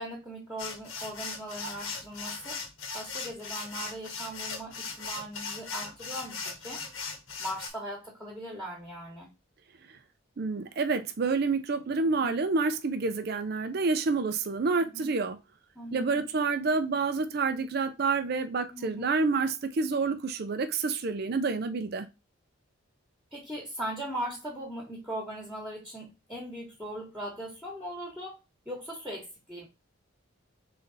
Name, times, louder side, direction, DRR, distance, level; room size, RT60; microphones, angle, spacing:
voice 1, 0.0-2.6 2.9-6.8 7.4-9.3 12.0-12.3 14.8-15.1 15.7-16.2 18.7-19.1 23.3-28.4 28.7-29.7, right 1 dB, 5° right, 1.2 m, -39 dB
sound 1, 0.6-7.7, left 4 dB, 80° left, 1.2 m, -38 dB
voice 2, 10.4-15.4 15.9-22.1, right 4 dB, 50° right, 0.4 m, -28 dB
3.9 x 3.3 x 3.9 m
head